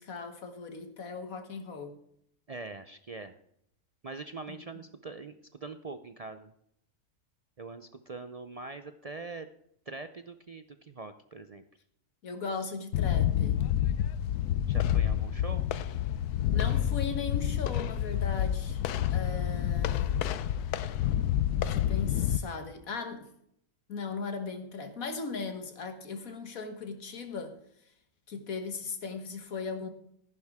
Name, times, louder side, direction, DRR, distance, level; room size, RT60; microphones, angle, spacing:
voice 1, 0.0-2.0 4.5-4.6 12.2-13.7 16.5-18.8 19.1-20.2 21.6-23.3 23.9-27.5 28.3-29.9, left 4 dB, 65° left, 7 dB, 1.8 m, -38 dB
voice 2, 2.5-3.4 4.0-6.5 7.6-9.5 9.9-11.6 14.7-15.7 19.6-19.8, right 3 dB, 75° right, 9 dB, 0.3 m, -43 dB
sound 1, 12.9-22.4, left 11 dB, 85° left, 1.2 m, -28 dB
14.5 x 11.0 x 3.6 m, 0.72 s
omnidirectional pair, 1.6 m